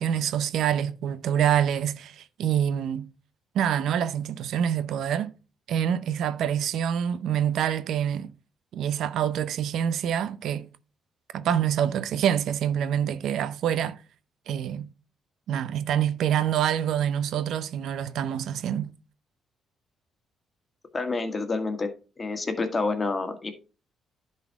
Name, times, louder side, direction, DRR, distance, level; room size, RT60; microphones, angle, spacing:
voice 1, 0.0-3.1 3.5-5.3 5.7-8.3 8.7-10.7 11.3-14.0 14.5-14.9 15.5-18.9, right 9 dB, 75° right, 0.6 m, -26 dB
voice 2, 20.9-21.9 22.2-23.5, left 3 dB, 30° left, 1.8 m, -28 dB
10.5 x 4.2 x 4.6 m
cardioid pair, 90°, 0 cm